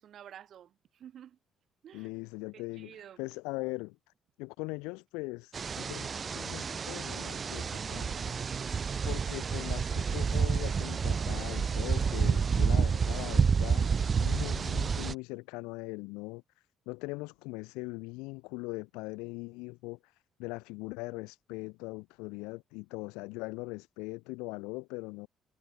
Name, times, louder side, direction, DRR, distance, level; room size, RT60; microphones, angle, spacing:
voice 1, 0.0-1.4 1.8-2.1 2.5-3.2, right 10 dB, 60° right, 5.7 m, -51 dB
voice 2, 1.9-4.0 4.4-8.4 9.0-25.3, left 26 dB, 90° left, 1.1 m, -41 dB
sound 1, 5.5-15.1, right 6 dB, 40° right, 0.4 m, -29 dB
supercardioid pair, 70°, 0 cm